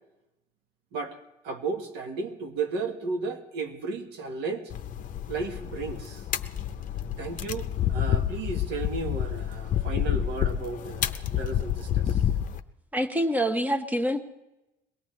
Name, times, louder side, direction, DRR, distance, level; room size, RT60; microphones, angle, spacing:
voice 1, 1.4-4.7 5.3-6.2 7.2-12.2, right 4 dB, 90° right, 5 dB, 1.5 m, -34 dB
sound 1, 4.7-12.6, left 10 dB, 50° left, 0.7 m, -29 dB
voice 2, 12.9-14.2, equal, 10° right, 8 dB, 1.0 m, -26 dB
22.5 x 17.5 x 3.2 m, 0.97 s
cardioid pair, 110°, 17 cm